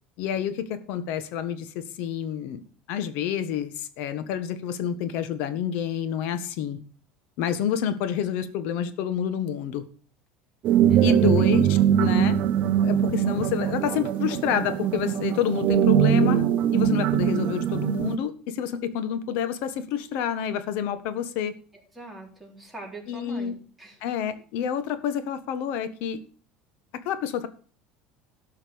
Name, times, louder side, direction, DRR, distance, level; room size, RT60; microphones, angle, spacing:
voice 1, 0.2-6.8 7.4-9.8 11.0-12.4 12.8-16.4 16.7-21.5 23.1-23.5 24.0-26.2 27.0-27.5, left 9 dB, 65° left, 12 dB, 1.4 m, -28 dB
sound 1, 10.6-18.2, right 10 dB, 50° right, 0.8 m, -22 dB
voice 2, 10.9-11.5 21.7-24.0, right 1 dB, ahead, -2 dB, 4.0 m, -42 dB
12.5 x 5.7 x 7.0 m, 0.42 s
supercardioid pair, 125°, 3 cm